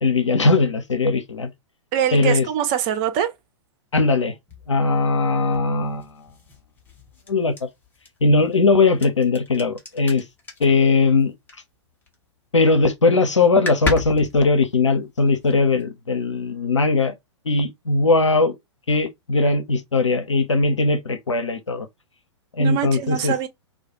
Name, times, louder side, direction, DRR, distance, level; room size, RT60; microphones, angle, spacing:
voice 1, 0.0-1.5 2.1-2.5 3.9-4.3 4.7-6.1 7.3-7.7 8.2-10.2 10.6-11.3 12.5-17.1 17.5-18.5 18.9-21.9 22.5-23.4, left 3 dB, 80° left, 0.6 m, -19 dB
voice 2, 1.9-3.3 22.6-23.5, right 10 dB, 30° right, 0.4 m, -23 dB
sound 1, 4.5-12.2 12.5-12.9 13.2-13.3 13.5-15.8, left 4 dB, 10° left, 0.7 m, -35 dB
2.3 x 2.2 x 2.8 m
figure-of-eight pair, 105°, 15 cm